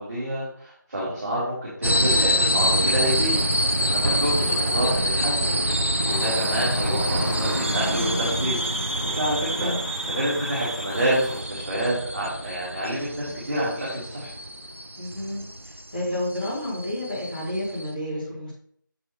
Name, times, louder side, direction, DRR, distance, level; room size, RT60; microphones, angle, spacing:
voice 1, 0.0-3.4 3.9-9.7 10.1-14.3, equal, 15° right, -16 dB, 3.4 m, -28 dB
sound 1, 1.8-17.9, equal, 35° right, 0.7 m, -26 dB
sound 2, 6.1-11.4, left 1 dB, 60° left, 1.7 m, -32 dB
voice 2, 15.0-15.4 15.9-18.5, left 1 dB, 25° left, -10 dB, 3.7 m, -30 dB
8.2 x 7.4 x 3.5 m, 0.62 s
figure-of-eight pair, 175°, 11 cm